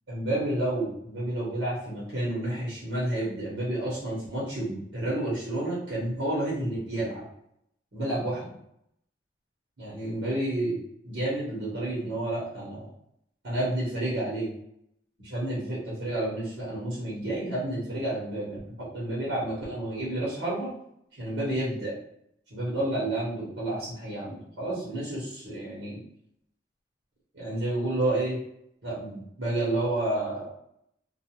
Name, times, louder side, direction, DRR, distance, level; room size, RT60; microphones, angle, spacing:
voice 1, 0.1-7.2 7.9-8.5 9.8-12.9 13.4-14.5 15.2-20.7 21.1-22.0 22.5-26.0 27.3-28.4 28.8-30.5, right 1 dB, 75° right, -7 dB, 1.1 m, -30 dB
2.4 x 2.4 x 2.9 m, 0.74 s
head